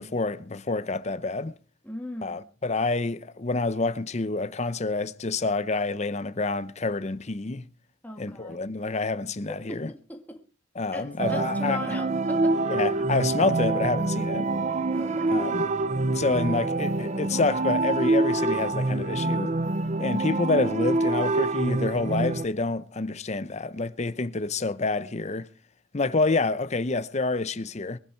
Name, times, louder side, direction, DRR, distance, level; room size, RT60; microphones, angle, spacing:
voice 1, 0.0-1.5 2.2-7.7 8.2-9.9 10.8-11.8 12.7-14.5 15.3-15.6 16.1-19.6 20.0-25.5 25.9-28.0, left 3 dB, 35° left, 0.7 m, -28 dB
voice 2, 1.8-2.4 8.0-8.6 9.5-10.4 10.9-12.6 14.9-15.4, left 1 dB, 10° left, 1.7 m, -39 dB
sound 1, 11.2-22.4, right 2 dB, 35° right, 0.7 m, -26 dB
23.5 x 10.0 x 4.5 m
head